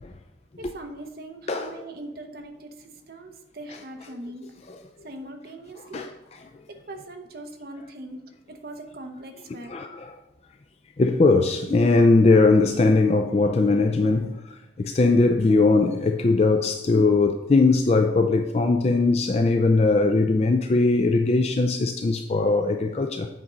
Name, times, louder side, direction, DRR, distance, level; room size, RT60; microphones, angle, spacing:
voice 1, 0.6-4.5 5.0-6.1 6.7-9.7, right 1 dB, 50° right, 0.8 m, -40 dB
voice 2, 9.7-10.2 11.0-14.4 14.8-23.3, left 3 dB, 35° left, 0.3 m, -20 dB
8.5 x 5.2 x 3.9 m
head